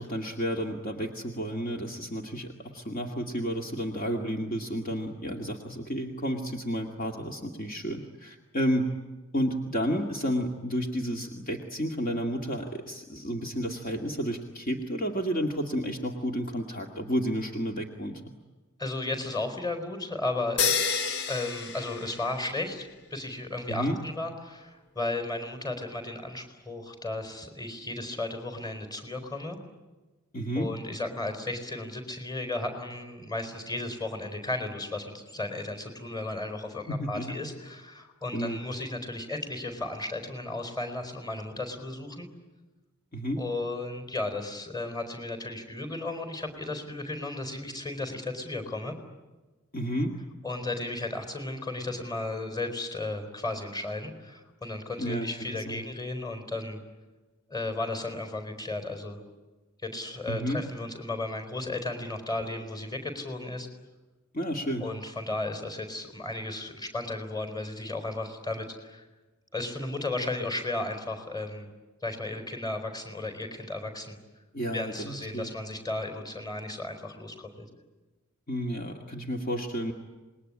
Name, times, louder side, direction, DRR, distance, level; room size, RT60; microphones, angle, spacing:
voice 1, 0.0-8.9 9.3-18.2 23.7-24.0 30.3-30.7 36.9-37.4 38.3-38.6 43.1-43.4 49.7-50.1 55.0-55.8 60.3-60.6 64.3-64.8 74.5-75.5 78.5-79.9, equal, 45° left, 3 dB, 2.2 m, -31 dB
voice 2, 18.8-29.6 30.6-42.3 43.4-49.0 50.4-56.8 57.5-59.2 59.8-63.7 64.8-69.0 69.5-71.7 72.0-74.2 74.7-77.7, left 2 dB, 20° left, 8 dB, 4.3 m, -34 dB
sound 1, 20.6-22.7, left 5 dB, 60° left, 1.4 m, -29 dB
27.5 x 21.0 x 9.9 m, 1.2 s
head